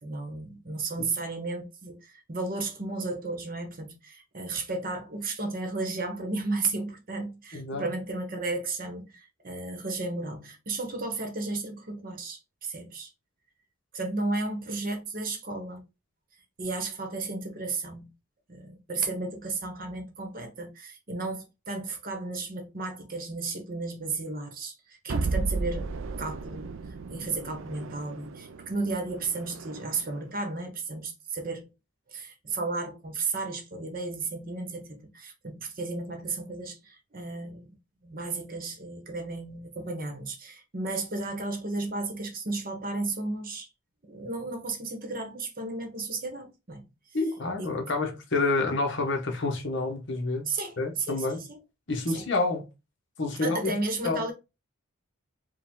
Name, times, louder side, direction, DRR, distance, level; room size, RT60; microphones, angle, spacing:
voice 1, 0.0-13.1 13.9-15.8 16.6-18.1 18.5-25.9 26.2-26.7 27.1-31.7 32.1-37.7 38.0-43.7 44.0-46.9 47.6-47.7 50.5-51.6 52.1-52.3 53.4-54.3, right 3 dB, 40° right, 1.0 m, -34 dB
voice 2, 7.5-7.9 47.1-50.4 50.8-51.4 51.9-52.7 53.2-53.7 54.0-54.3, left 3 dB, 55° left, 1.1 m, -28 dB
sound 1, 25.1-30.2, right 3 dB, 65° right, 0.4 m, -34 dB
5.0 x 2.3 x 3.7 m
head